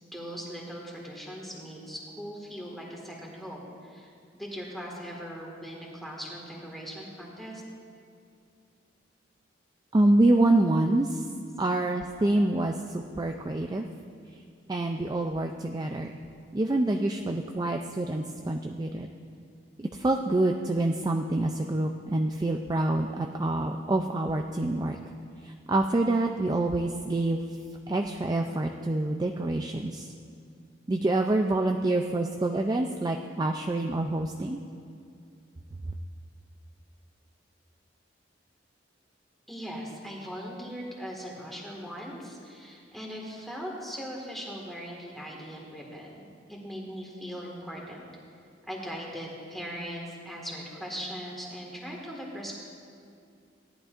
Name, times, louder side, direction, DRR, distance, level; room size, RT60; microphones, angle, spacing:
voice 1, 0.0-7.6 39.5-48.0 48.7-52.6, equal, ahead, -3 dB, 1.8 m, -40 dB
voice 2, 9.9-11.3 11.6-13.9 14.3-14.4 14.7-16.2 16.5-19.1 19.8-25.0 25.4-27.6 27.9-30.1 30.9-34.6, right 2 dB, 20° right, 3 dB, 0.4 m, -26 dB
17.5 x 11.0 x 2.5 m, 2.4 s
head